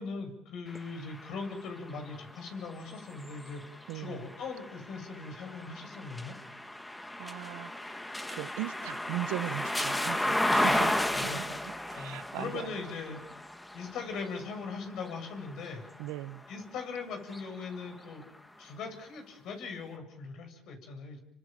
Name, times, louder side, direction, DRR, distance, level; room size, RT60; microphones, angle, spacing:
voice 1, 0.0-6.4 10.6-11.4 11.9-13.2 13.7-15.8 16.5-18.2 18.6-21.2, left 4 dB, 65° left, 5 dB, 7.6 m, -40 dB
sound 1, 0.7-16.6 17.2-18.4, left 1 dB, 10° left, 2.0 m, -35 dB
voice 2, 3.9-4.3 7.2-8.0 8.3-12.7 16.0-16.4, right 17 dB, 80° right, 14 dB, 1.1 m, -39 dB
29.0 x 25.0 x 7.6 m, 0.88 s
supercardioid pair, 85°, 0 cm